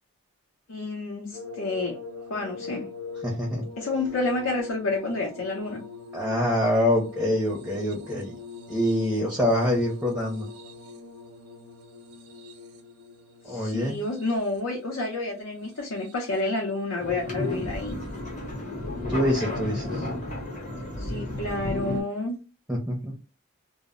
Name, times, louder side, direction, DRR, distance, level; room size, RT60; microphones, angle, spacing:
voice 1, 0.7-2.0 2.3-2.8 3.8-5.8 13.5-18.0 21.0-22.4, left 2 dB, 80° left, 0.6 m, -29 dB
sound 1, 1.3-16.6 17.4-18.2 19.6-19.7, left 4 dB, 85° right, 0.5 m, -43 dB
voice 2, 3.2-3.6 6.1-8.3 8.7-10.5 13.5-14.0 19.1-20.1 22.7-23.1, left 1 dB, 5° right, 0.5 m, -25 dB
sound 2, 17.0-22.0, left 1 dB, 35° left, 0.7 m, -32 dB
2.0 x 2.0 x 3.5 m
head